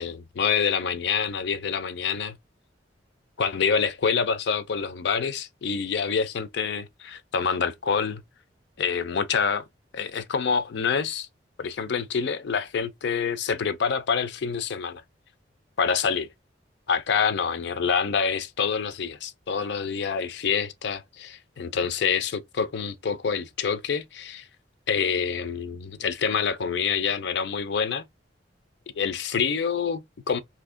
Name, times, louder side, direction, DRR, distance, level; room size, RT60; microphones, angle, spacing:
voice 1, 0.0-2.4 3.4-8.1 8.8-9.6 9.9-11.3 11.6-15.0 15.8-16.3 16.9-24.5 24.9-28.1 29.0-30.4, left 6 dB, 65° left, 0.4 m, -26 dB
2.8 x 2.6 x 3.6 m
head